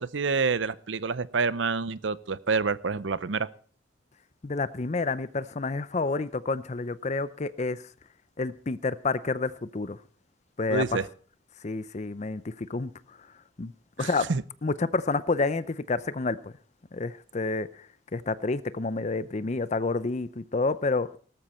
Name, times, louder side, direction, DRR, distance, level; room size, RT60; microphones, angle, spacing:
voice 1, 0.0-3.5 10.7-11.1 14.0-14.4, right 4 dB, 80° right, 0.7 m, -28 dB
voice 2, 4.4-7.8 8.4-10.0 10.6-11.0 11.6-12.9 13.6-13.7 14.0-14.3 14.6-16.5 16.9-17.7 18.1-21.1, left 3 dB, 40° left, 0.6 m, -29 dB
18.0 x 14.0 x 4.4 m
head